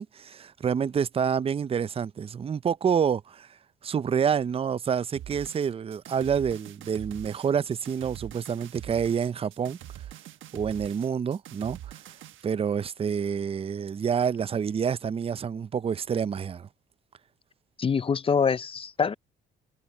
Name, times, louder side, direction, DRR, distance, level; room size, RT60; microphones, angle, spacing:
voice 1, 0.0-3.5 3.8-9.8 10.5-11.9 12.4-16.7, right 7 dB, 30° right, 0.4 m, -28 dB
sound 1, 5.2-12.5, right 12 dB, 75° right, 1.2 m, -44 dB
voice 2, 17.8-19.1, left 6 dB, 30° left, 0.4 m, -25 dB
cardioid pair, 90°, 20 cm